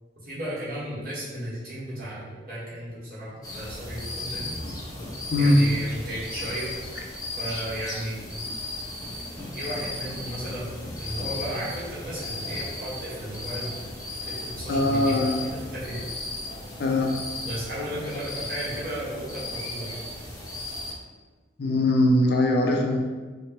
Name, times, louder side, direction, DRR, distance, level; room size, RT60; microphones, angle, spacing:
voice 1, 0.2-4.6 5.4-6.7 7.4-8.2 9.5-10.7 11.0-13.7 14.2-15.2 15.5-16.0 17.4-20.0, right 1 dB, 55° right, -8 dB, 1.3 m, -34 dB
sound 1, 3.4-20.9, left 2 dB, 20° left, 0.7 m, -36 dB
voice 2, 14.7-15.5 16.8-17.2 21.6-23.0, left 1 dB, 60° left, 1 dB, 0.5 m, -21 dB
4.4 x 2.2 x 2.9 m, 1.4 s
head